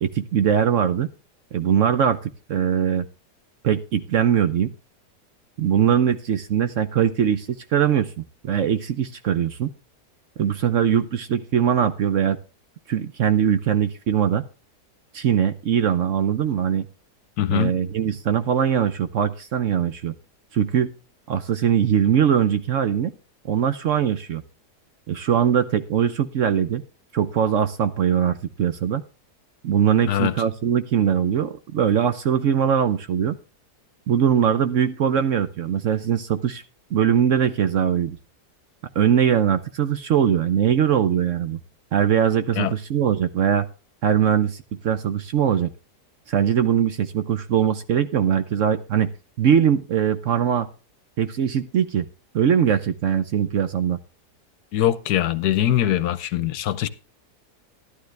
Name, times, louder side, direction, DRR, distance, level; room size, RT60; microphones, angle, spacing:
voice 1, 0.0-1.1 1.5-3.1 3.6-4.7 5.6-9.7 10.4-12.4 12.9-14.4 15.1-16.9 17.5-20.1 20.5-20.9 21.3-23.1 23.4-24.4 25.1-26.8 27.1-29.0 29.6-33.4 34.1-36.6 36.9-38.2 39.0-41.6 41.9-43.7 44.0-45.7 46.3-49.1 49.4-50.7 51.2-52.1 52.3-54.0, right 8 dB, 60° right, 0.9 m, -21 dB
voice 2, 17.4-17.7 30.1-30.3 42.5-42.7 54.7-56.9, left 12 dB, 75° left, 1.3 m, -22 dB
12.0 x 11.5 x 3.2 m
omnidirectional pair, 1.7 m